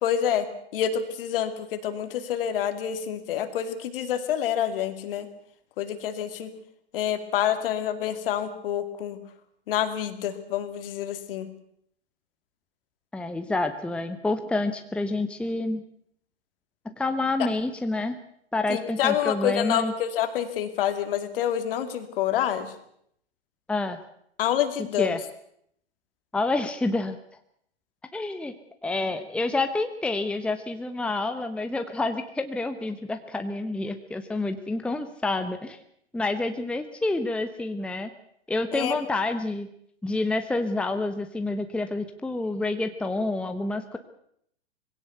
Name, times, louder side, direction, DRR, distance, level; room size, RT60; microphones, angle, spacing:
voice 1, 0.0-5.3 5.8-6.5 6.9-9.2 9.7-11.5 17.4-17.5 18.7-22.7 24.4-25.1 38.7-39.0, left 10 dB, 55° left, 9 dB, 2.6 m, -27 dB
voice 2, 13.1-15.8 16.8-18.2 18.5-19.9 23.7-24.0 25.0-25.2 26.3-27.2 28.1-28.5 28.8-35.8 36.1-38.1 38.5-39.7 40.0-44.0, left 2 dB, 5° left, 7 dB, 1.0 m, -28 dB
21.0 x 17.0 x 8.1 m, 0.69 s
hypercardioid pair, 110°, 32 cm